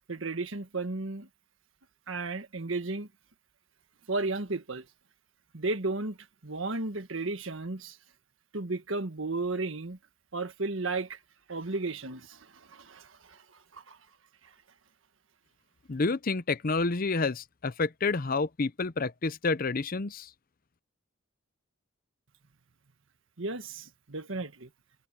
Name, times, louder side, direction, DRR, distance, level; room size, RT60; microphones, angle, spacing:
voice 1, 0.1-1.3 2.1-3.1 4.1-4.8 5.5-6.2 6.4-8.0 8.5-10.0 10.3-11.2 11.5-13.4 13.7-14.0 14.4-14.5 23.4-24.7, right 3 dB, 70° right, 1.6 m, -34 dB
voice 2, 15.9-20.3, left 3 dB, 45° left, 0.7 m, -29 dB
head